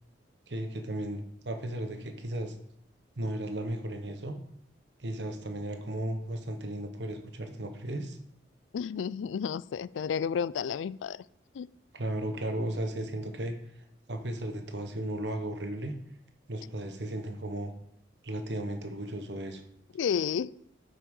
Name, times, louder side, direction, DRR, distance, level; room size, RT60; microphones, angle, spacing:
voice 1, 0.5-2.5 3.2-4.4 5.0-8.2 11.9-13.6 14.1-15.9 16.5-17.7 18.2-19.6, right 1 dB, 70° right, 6 dB, 1.2 m, -35 dB
voice 2, 8.7-11.2 11.5-11.7 19.9-20.5, left 7 dB, 90° left, 19 dB, 0.3 m, -31 dB
8.0 x 5.9 x 5.4 m, 0.72 s
head